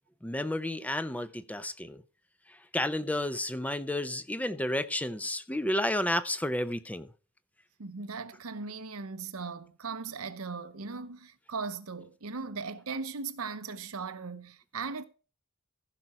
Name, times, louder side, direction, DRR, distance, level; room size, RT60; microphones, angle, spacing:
voice 1, 0.2-2.0 2.7-7.1, left 1 dB, 5° left, 0.6 m, -31 dB
voice 2, 7.8-15.0, right 4 dB, 85° right, 0.9 m, -38 dB
15.0 x 6.0 x 4.3 m
head